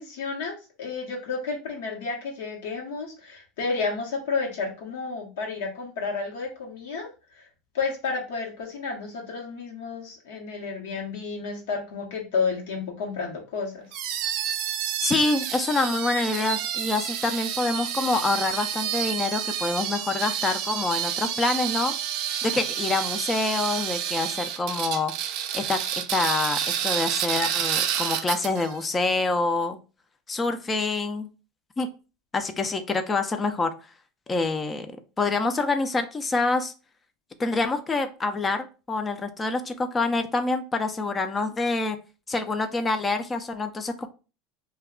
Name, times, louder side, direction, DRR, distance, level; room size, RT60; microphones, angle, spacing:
voice 1, 0.0-7.5 7.7-13.9, left 4 dB, 80° left, -1 dB, 0.9 m, -31 dB
sound 1, 13.9-28.7, right 10 dB, 60° right, 0.4 m, -29 dB
voice 2, 15.0-21.9 22.4-25.1 25.5-29.8 30.3-31.3 31.8-31.9 32.3-33.7 34.3-34.9 35.2-36.7 37.4-42.0 42.3-44.1, left 3 dB, 25° left, 8 dB, 0.4 m, -26 dB
2.2 x 2.2 x 3.6 m, 0.33 s
supercardioid pair, 100°, 0 cm